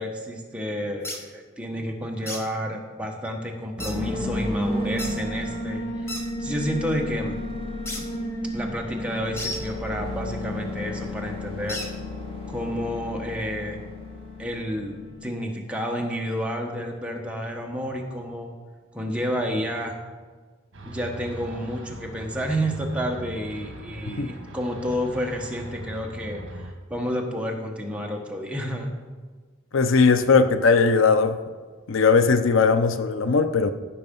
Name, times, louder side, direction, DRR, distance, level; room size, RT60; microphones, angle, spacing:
voice 1, 0.0-7.4 8.5-11.8 12.5-13.8 14.4-18.5 18.9-20.0 20.8-28.9, equal, 5° right, 0 dB, 1.2 m, -30 dB
sound 1, 1.0-1.2 2.3-2.4 3.8-4.0 5.0-5.1 6.1-6.2 7.9-8.0 9.4-9.6 11.7-11.9, left 1 dB, 15° left, 1.0 m, -32 dB
sound 2, 3.8-15.3, left 1 dB, 30° left, 2.3 m, -32 dB
sound 3, 20.7-26.7, right 1 dB, 70° right, 1.5 m, -40 dB
voice 2, 29.7-31.4 31.9-33.7, left 4 dB, 70° left, 10 dB, 0.6 m, -19 dB
15.0 x 5.8 x 5.4 m, 1.5 s
head